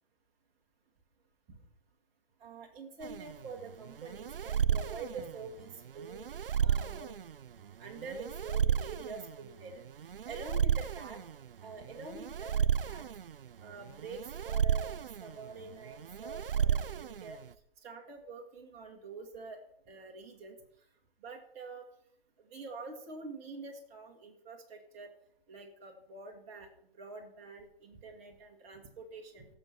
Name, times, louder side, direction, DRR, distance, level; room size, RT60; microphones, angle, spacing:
voice 1, 2.4-6.2 6.6-7.1 7.8-9.8 10.3-11.2 11.6-13.1 13.6-17.4 17.8-19.6 19.9-20.6 21.2-21.9 22.4-25.1 25.5-26.7 27.0-29.5, right 3 dB, 20° right, 1 dB, 1.9 m, -46 dB
sound 1, 3.0-17.5, right 8 dB, 70° right, 0.5 m, -33 dB
17.0 x 6.7 x 4.4 m, 0.70 s
figure-of-eight pair, 130°, 29 cm